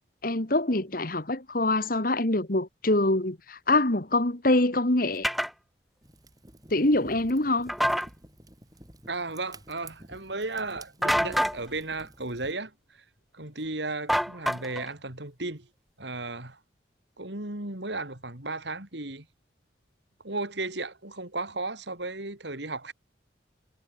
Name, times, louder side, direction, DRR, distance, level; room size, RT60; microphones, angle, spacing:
voice 1, 0.2-5.3 6.7-7.7, left 2 dB, 50° left, 2.0 m, -25 dB
sound 1, 5.2-5.5 7.7-8.1 11.0-11.6 14.1-14.9, equal, ahead, 0.5 m, -26 dB
Fire, 6.0-12.5, right 1 dB, 20° right, 6.9 m, -51 dB
voice 2, 9.1-13.0 13.3-15.7 16.0-16.6 17.2-19.3 20.2-22.9, right 2 dB, 70° right, 3.9 m, -35 dB
head